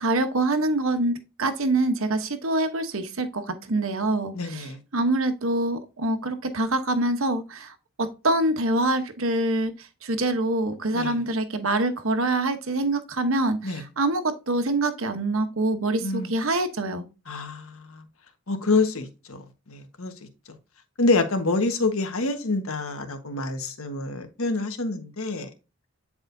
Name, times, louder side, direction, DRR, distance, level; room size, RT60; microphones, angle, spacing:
voice 1, 0.0-17.1, right 2 dB, 65° right, 1.0 m, -25 dB
voice 2, 4.3-4.8 10.9-11.2 13.6-13.8 16.0-16.3 17.3-18.0 18.5-19.4 19.7-20.1 21.0-25.5, left 3 dB, 70° left, 1.4 m, -27 dB
9.7 x 4.8 x 2.7 m
head